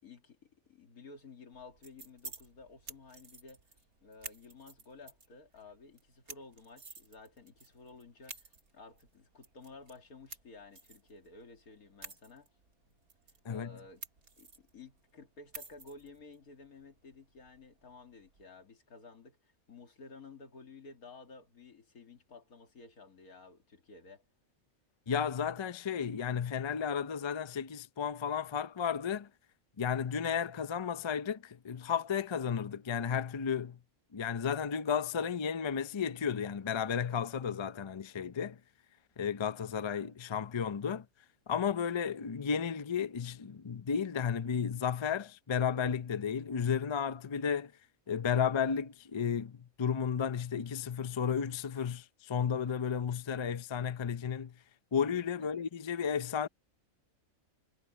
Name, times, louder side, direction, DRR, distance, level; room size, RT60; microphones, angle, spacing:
voice 1, 0.0-12.5 13.5-14.0 14.4-24.3 55.4-55.5, left 3 dB, 90° left, 2.7 m, -53 dB
sound 1, 1.5-18.4, right 4 dB, 80° right, 2.9 m, -53 dB
voice 2, 13.4-13.8 25.1-29.3 29.8-33.8 34.1-38.6 39.2-41.1 41.5-47.7 48.1-54.6 54.9-56.5, left 7 dB, 40° left, 0.4 m, -33 dB
omnidirectional pair, 1.5 m